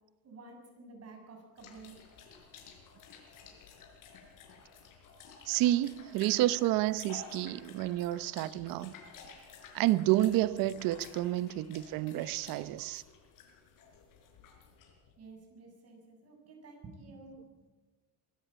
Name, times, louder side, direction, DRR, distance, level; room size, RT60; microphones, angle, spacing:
voice 1, 0.2-2.0 15.2-17.5, right 3 dB, 45° right, 7.5 m, -51 dB
sound 1, 1.6-15.1, left 5 dB, 65° left, 5.5 m, -53 dB
voice 2, 5.5-8.9 9.7-13.0, right 15 dB, 80° right, 1.0 m, -29 dB
23.5 x 13.5 x 8.9 m
cardioid pair, 130°, 34 cm